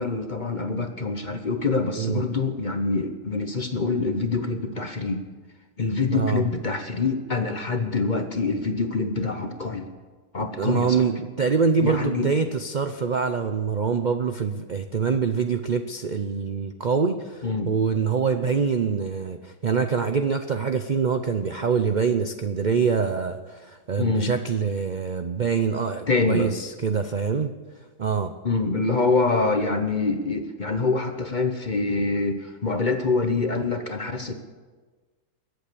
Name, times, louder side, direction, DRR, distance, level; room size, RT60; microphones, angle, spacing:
voice 1, 0.0-5.2 5.8-9.9 10.3-11.0 11.8-12.3 17.4-17.7 24.0-24.3 26.1-26.5 28.4-34.3, left 3 dB, 35° left, 7 dB, 0.9 m, -25 dB
voice 2, 6.1-6.5 10.6-27.5 28.0-28.3, right 6 dB, 55° right, 8 dB, 0.5 m, -25 dB
21.5 x 8.3 x 6.9 m, 1.4 s
omnidirectional pair, 1.7 m